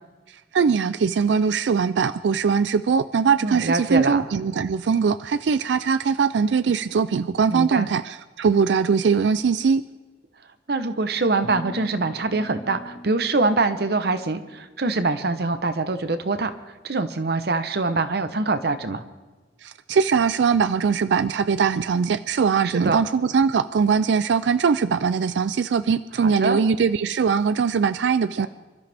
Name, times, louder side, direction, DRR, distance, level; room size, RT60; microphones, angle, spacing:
voice 1, 0.5-9.9 19.6-28.5, right 6 dB, 75° right, 14 dB, 0.4 m, -21 dB
voice 2, 3.4-4.3 7.5-7.9 10.7-16.5 16.8-19.0 22.6-23.0 26.2-26.6 28.4-28.5, right 3 dB, 60° right, 10 dB, 0.8 m, -24 dB
sound 1, 11.4-14.6, equal, 40° left, 2.5 m, -41 dB
26.5 x 13.0 x 3.4 m, 1.3 s
head